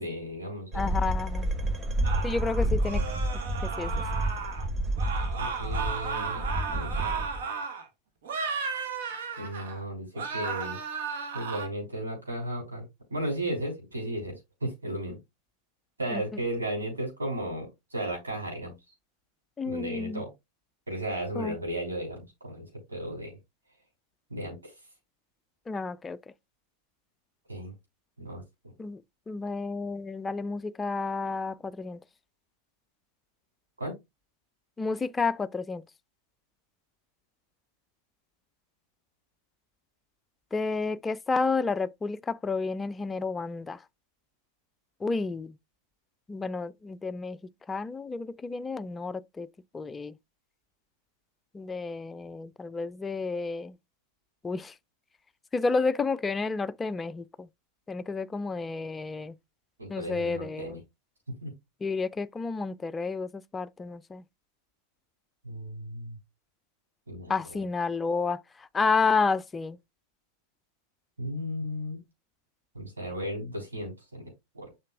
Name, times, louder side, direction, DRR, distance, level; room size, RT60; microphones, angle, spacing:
voice 1, 0.0-1.0 5.4-6.4 6.7-7.2 9.4-10.8 11.3-15.2 16.0-18.7 19.7-20.3 20.9-23.4 24.3-24.7 27.5-27.7 28.2-28.4 33.8-33.9 59.8-60.8 61.3-61.5 65.4-66.2 67.1-67.6 71.2-72.0 72.7-74.7, right 1 dB, 75° right, 3.6 m, -35 dB
voice 2, 0.7-1.5 2.2-3.0 3.6-3.9 16.1-16.2 19.6-20.2 21.4-21.6 25.7-26.2 28.8-29.0 29.3-32.0 34.8-35.8 40.5-43.8 45.0-45.5 46.3-47.4 47.7-49.5 49.7-50.1 51.5-53.7 54.4-54.7 55.5-57.5 57.9-59.3 59.9-60.8 61.8-64.2 67.3-69.8, left 4 dB, 15° left, 0.3 m, -30 dB
sound 1, 0.7-7.5, right 1 dB, 20° right, 1.0 m, -30 dB
sound 2, 2.0-4.7 5.0-7.8 8.2-9.8 10.1-11.7, right 5 dB, 60° right, 1.2 m, -34 dB
7.4 x 5.5 x 2.3 m
figure-of-eight pair, 90°, 0 cm